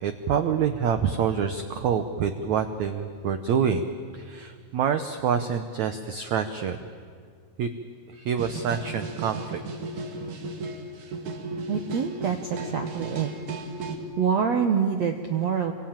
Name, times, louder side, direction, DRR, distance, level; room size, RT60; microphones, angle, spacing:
voice 1, 0.0-3.8 4.1-6.8 7.6-7.7 8.1-9.6, right 7 dB, 85° right, 9 dB, 1.6 m, -26 dB
sound 1, 8.3-14.0, right 3 dB, 55° right, 3.3 m, -35 dB
voice 2, 11.7-13.3 14.2-15.7, right 7 dB, 70° right, 5 dB, 1.6 m, -26 dB
27.5 x 24.0 x 9.0 m, 2.1 s
omnidirectional pair, 4.7 m